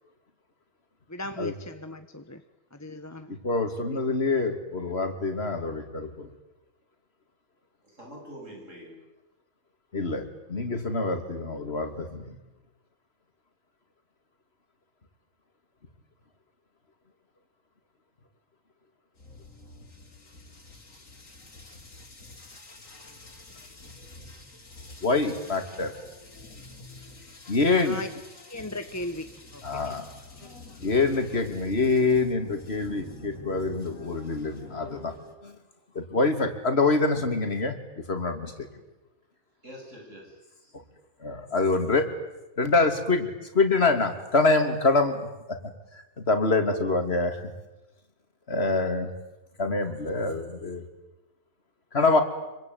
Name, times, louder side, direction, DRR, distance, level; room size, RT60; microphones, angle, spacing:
voice 1, 1.1-2.4 2.7-3.4 3.8-4.0 27.8-28.1 28.5-29.9 30.3-30.4, left 1 dB, 15° left, 8 dB, 1.1 m, -38 dB
voice 2, 3.3-6.3 9.9-12.4 25.0-25.9 27.5-28.0 29.6-30.1 30.8-35.1 35.4-35.5 35.9-37.8 38.1-38.7 41.2-42.0 42.6-45.6 46.2-47.5 48.5-49.1 49.6-50.8 51.9-52.2, left 3 dB, 45° left, 6 dB, 3.0 m, -25 dB
voice 3, 7.8-9.0 39.6-40.7, equal, 60° right, -1 dB, 7.9 m, -45 dB
sound 1, 19.2-35.3, left 2 dB, 65° left, 3.6 m, -47 dB
26.0 x 24.0 x 9.5 m, 1.0 s
omnidirectional pair, 1.5 m